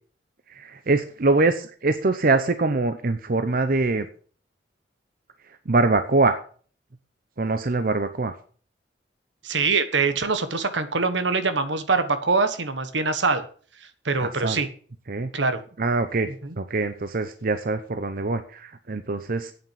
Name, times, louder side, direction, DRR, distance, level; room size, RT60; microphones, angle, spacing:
voice 1, 0.5-4.1 5.5-6.4 7.4-8.3 14.2-14.6 15.1-15.3 15.8-16.3 16.6-19.5, right 3 dB, 50° right, 9 dB, 0.8 m, -23 dB
voice 2, 9.4-13.5 14.0-14.7 15.3-15.6 16.4-16.5, right 4 dB, 80° right, 11 dB, 1.4 m, -23 dB
8.8 x 7.4 x 7.8 m, 0.43 s
head